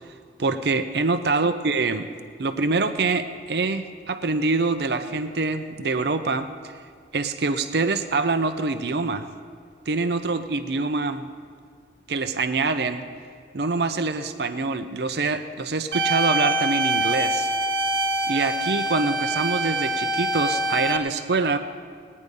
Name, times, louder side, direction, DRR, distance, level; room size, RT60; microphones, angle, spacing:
voice 1, 0.4-2.1 2.4-6.5 7.1-9.3 9.9-11.3 12.1-13.0 13.5-17.5 18.2-21.6, right 3 dB, 65° right, 9 dB, 0.6 m, -25 dB
sound 1, 15.9-21.0, right 2 dB, 80° right, 1.2 m, -24 dB
20.0 x 9.6 x 5.3 m, 2.1 s
head